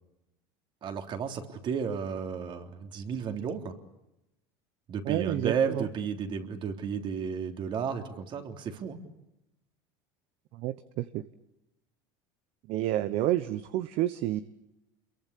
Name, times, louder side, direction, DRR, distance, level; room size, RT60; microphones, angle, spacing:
voice 1, 0.8-3.7 4.9-9.0, right 6 dB, 45° right, 4 dB, 3.6 m, -33 dB
voice 2, 5.1-5.8 10.5-11.2 12.7-14.4, right 14 dB, 60° right, 12 dB, 1.1 m, -29 dB
27.5 x 23.0 x 8.4 m, 0.90 s
supercardioid pair, 105°, 12 cm